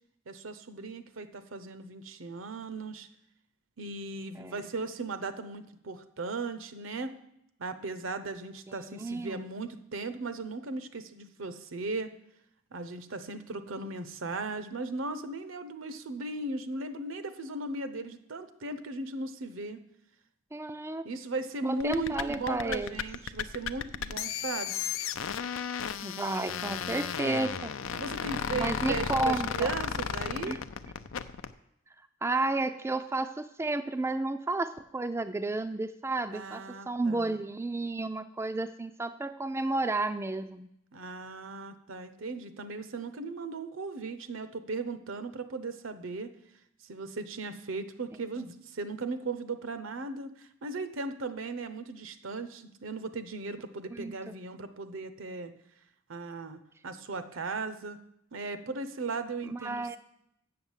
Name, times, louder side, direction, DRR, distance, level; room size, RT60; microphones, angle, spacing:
voice 1, 0.3-3.1 3.8-7.1 7.6-12.1 12.7-19.8 21.0-24.9 28.0-30.6 36.3-37.4 40.9-46.3 46.8-55.5 56.1-58.0 58.3-60.0, right 3 dB, 80° right, 12 dB, 0.8 m, -37 dB
voice 2, 8.7-9.4 20.5-21.0 21.6-23.0 26.0-27.7 28.5-29.7 30.5-30.6 32.2-40.7 53.9-54.1 59.5-60.0, right 2 dB, 15° right, 9 dB, 0.3 m, -32 dB
sound 1, 21.8-31.5, left 7 dB, 90° left, 0.5 m, -34 dB
7.8 x 7.0 x 7.3 m, 0.77 s
head